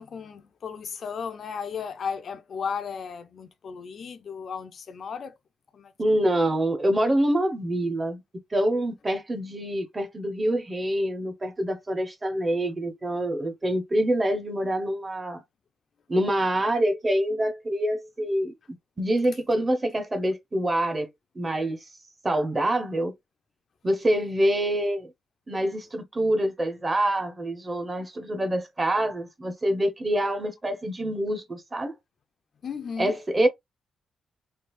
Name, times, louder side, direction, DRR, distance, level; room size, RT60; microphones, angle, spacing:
voice 1, 0.0-5.4 5.7-5.9 32.6-33.2, left 6 dB, 45° left, 0.4 m, -35 dB
voice 2, 6.0-8.2 8.5-15.4 16.1-18.5 19.0-21.1 21.4-21.8 22.2-23.1 23.8-25.1 25.5-31.9 33.0-33.5, right 1 dB, 20° right, 0.6 m, -26 dB
3.2 x 2.3 x 3.0 m
wide cardioid pair, 180°, 0 cm